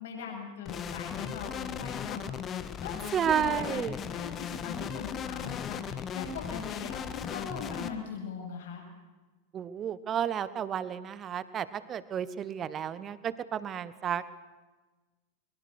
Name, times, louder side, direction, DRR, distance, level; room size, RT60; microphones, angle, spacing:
voice 1, 0.0-2.2 2.8-2.9 3.3-8.8, left 5 dB, 60° left, 0 dB, 7.8 m, -40 dB
sound 1, 0.7-7.9, left 8 dB, 25° left, 1.4 m, -37 dB
voice 2, 3.1-3.9 9.5-14.2, right 9 dB, 25° right, 16 dB, 1.3 m, -32 dB
22.5 x 22.5 x 6.6 m, 1.3 s
figure-of-eight pair, 90°, 0 cm